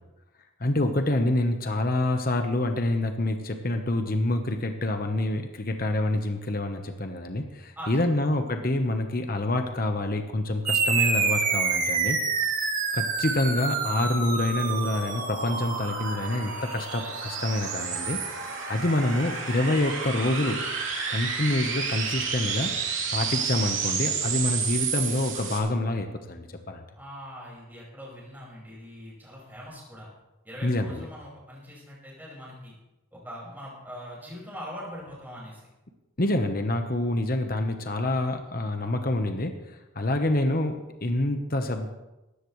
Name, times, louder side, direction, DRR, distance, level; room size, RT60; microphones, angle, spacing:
voice 1, 0.6-12.2 12.9-18.2 18.7-20.6 21.1-22.8 23.1-26.8 30.6-31.1 36.2-41.9, left 1 dB, 45° left, 5 dB, 1.1 m, -27 dB
voice 2, 7.8-8.2 27.0-30.1 30.4-32.7 33.1-35.7, equal, 10° right, -5 dB, 5.5 m, -42 dB
sound 1, 10.7-19.5, right 4 dB, 40° right, 1.7 m, -29 dB
sound 2, 14.3-25.6, right 6 dB, 65° right, 3.0 m, -31 dB
17.5 x 15.0 x 3.2 m, 1.0 s
head